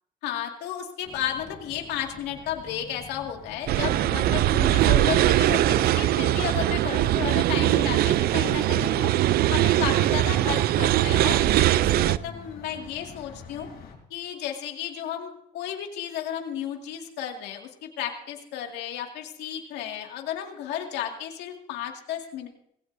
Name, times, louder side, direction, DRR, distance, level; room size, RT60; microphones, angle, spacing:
voice 1, 0.2-9.1 9.5-13.7 14.1-22.5, left 10 dB, 85° left, 2 dB, 2.2 m, -33 dB
sound 1, 1.0-13.9, left 5 dB, 60° left, 5.1 m, -45 dB
sound 2, 3.7-12.2, right 14 dB, 65° right, 0.5 m, -21 dB
19.5 x 16.5 x 2.7 m, 0.73 s
cardioid pair, 110°, 17 cm